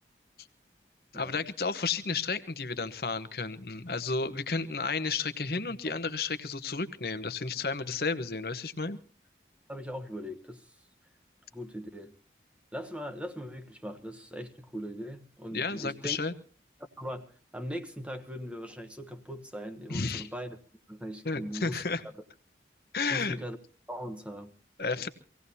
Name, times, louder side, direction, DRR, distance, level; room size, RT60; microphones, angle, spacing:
voice 1, 1.1-9.0 15.5-16.3 19.9-20.3 21.2-22.0 22.9-23.4 24.8-25.1, left 4 dB, 60° left, 1.0 m, -32 dB
voice 2, 9.7-10.7 11.5-12.1 12.7-16.2 17.0-20.6 20.9-21.8 23.1-23.6 23.9-24.5, equal, 5° right, 1.0 m, -40 dB
25.5 x 17.0 x 2.8 m
head